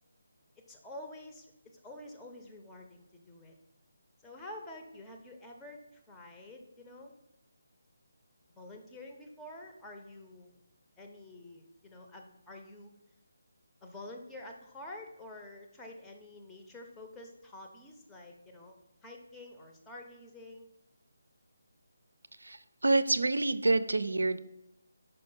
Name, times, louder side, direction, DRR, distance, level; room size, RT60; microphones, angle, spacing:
voice 1, 0.7-3.5 4.2-7.1 8.6-10.5 11.0-12.9 13.8-20.7, left 1 dB, 10° left, 1 dB, 0.7 m, -48 dB
voice 2, 22.4-24.4, right 2 dB, 65° right, 14 dB, 0.5 m, -27 dB
5.6 x 5.1 x 5.5 m, 0.86 s
figure-of-eight pair, 150°, 0 cm